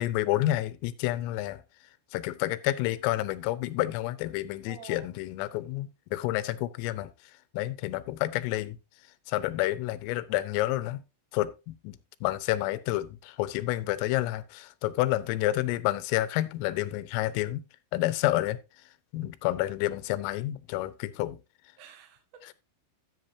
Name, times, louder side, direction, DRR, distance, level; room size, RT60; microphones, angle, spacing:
voice 1, 0.0-1.6 2.1-7.1 7.5-8.8 9.3-11.0 11.3-12.0 12.2-17.6 17.9-18.6 19.1-21.4, left 16 dB, 90° left, 3.4 m, -29 dB
voice 2, 4.6-5.1 21.8-22.5, right 6 dB, 65° right, 1.7 m, -49 dB
14.0 x 7.6 x 2.7 m
omnidirectional pair, 5.8 m